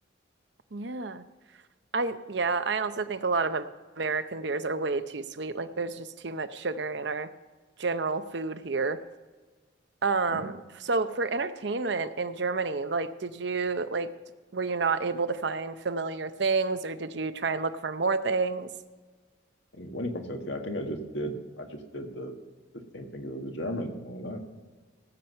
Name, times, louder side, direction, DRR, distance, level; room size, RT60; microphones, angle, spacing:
voice 1, 0.7-1.2 1.9-3.7 4.0-7.3 7.8-9.0 10.0-10.6 10.8-14.1 14.5-18.7, right 4 dB, 60° right, 11 dB, 0.7 m, -29 dB
voice 2, 19.7-22.3 22.9-24.4, equal, 65° left, 4 dB, 1.7 m, -35 dB
17.5 x 8.1 x 5.6 m, 1.3 s
head